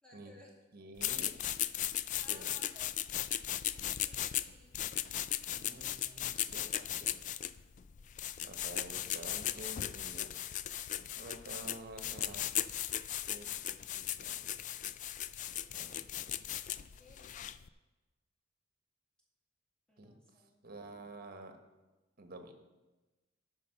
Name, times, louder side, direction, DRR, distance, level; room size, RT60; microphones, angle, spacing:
voice 1, 0.0-0.5 2.2-3.3 3.8-4.9 5.7-6.6 16.5-17.3 19.9-20.6, left 1 dB, 5° left, -4 dB, 2.4 m, -61 dB
voice 2, 0.7-1.4 2.3-2.5 5.5-7.1 8.4-10.3 11.2-12.4 13.3-14.6 15.7-16.5 20.0-20.1 20.6-21.5 22.2-22.5, right 2 dB, 50° right, 6 dB, 1.2 m, -50 dB
sound 1, 1.0-17.7, left 12 dB, 40° left, 0.3 m, -37 dB
13.0 x 5.4 x 6.4 m, 1.1 s
head